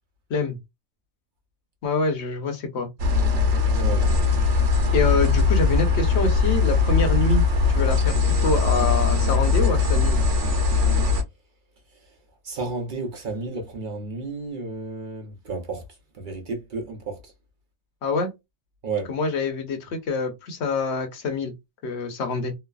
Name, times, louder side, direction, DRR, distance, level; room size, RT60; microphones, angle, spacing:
voice 1, 1.8-2.9 4.9-7.4 7.7-10.2 18.0-18.3 19.1-21.5 21.8-22.5, left 3 dB, 65° left, 1.0 m, -26 dB
sound 1, 3.0-11.2, left 4 dB, 80° right, 1.0 m, -20 dB
voice 2, 12.4-15.8 16.2-17.2 18.8-19.1, right 3 dB, 50° right, 0.7 m, -32 dB
3.1 x 2.0 x 2.2 m
omnidirectional pair, 1.3 m